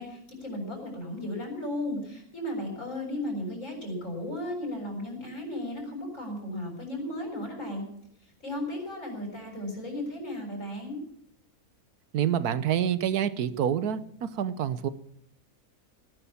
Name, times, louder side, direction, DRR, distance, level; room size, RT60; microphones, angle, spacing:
voice 1, 0.0-7.9 8.4-11.0, left 1 dB, 55° left, 0 dB, 6.7 m, -35 dB
voice 2, 12.1-14.9, right 9 dB, 80° right, 14 dB, 1.4 m, -27 dB
18.0 x 11.0 x 7.0 m, 0.72 s
omnidirectional pair, 1.6 m